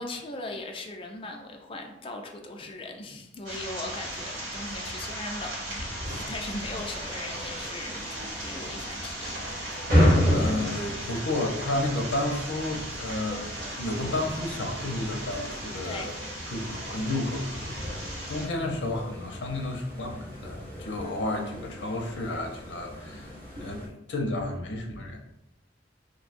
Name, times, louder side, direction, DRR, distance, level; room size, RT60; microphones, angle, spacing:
voice 1, 0.0-9.4 15.8-16.2, left 2 dB, 30° left, 2 dB, 0.4 m, -39 dB
sound 1, 3.4-18.5, right 1 dB, 70° right, 1.3 m, -37 dB
sound 2, 3.6-15.6, right 1 dB, 85° right, 0.5 m, -47 dB
sound 3, 6.2-23.9, equal, 50° right, 1.1 m, -32 dB
voice 2, 10.3-13.4 13.8-16.1 16.5-23.3 23.6-25.2, left 1 dB, 75° left, 2 dB, 0.6 m, -32 dB
2.6 x 2.3 x 4.1 m, 0.88 s
head